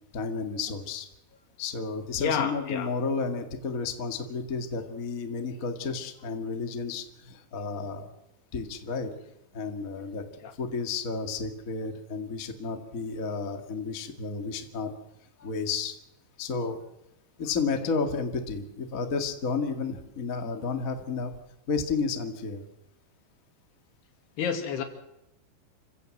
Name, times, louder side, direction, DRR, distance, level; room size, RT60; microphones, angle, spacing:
voice 1, 0.1-1.1 1.6-8.1 8.5-9.1 9.5-10.2 10.6-14.9 15.4-16.0 16.4-16.8 17.4-21.3 21.7-22.6, left 4 dB, 50° left, 5 dB, 1.0 m, -32 dB
voice 2, 2.2-2.9 10.4-10.5 24.4-24.8, left 7 dB, 65° left, 6 dB, 4.2 m, -29 dB
28.0 x 16.0 x 7.8 m, 0.87 s
omnidirectional pair, 5.3 m